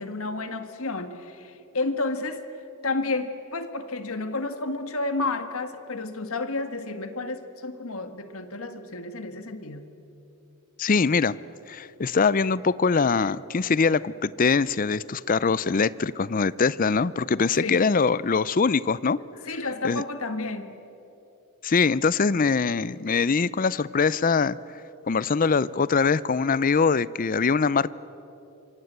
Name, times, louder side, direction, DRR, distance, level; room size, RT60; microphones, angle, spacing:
voice 1, 0.0-2.5 2.8-9.9 17.6-17.8 19.5-20.7, left 3 dB, 70° left, 9 dB, 1.7 m, -31 dB
voice 2, 10.8-11.4 11.7-19.2 19.8-20.0 21.6-24.6 25.1-27.9, left 5 dB, 40° left, 19 dB, 0.5 m, -23 dB
27.0 x 24.5 x 8.1 m, 3.0 s
head